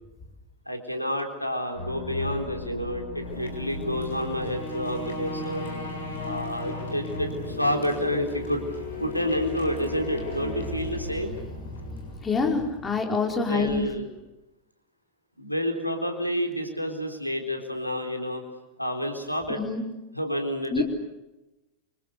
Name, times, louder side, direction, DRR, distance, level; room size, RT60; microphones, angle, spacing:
voice 1, 0.7-5.6 6.2-8.6 9.0-11.3 13.4-14.1 15.4-18.4 18.8-19.6 20.1-20.8, equal, 90° left, 4 dB, 3.9 m, -29 dB
sound 1, 1.7-13.0, left 2 dB, 65° left, 7.2 m, -36 dB
voice 2, 12.2-13.8 19.5-19.8 20.7-20.8, left 4 dB, 15° left, 2 dB, 4.9 m, -26 dB
29.5 x 26.0 x 6.9 m, 0.99 s
figure-of-eight pair, 90°, 0 cm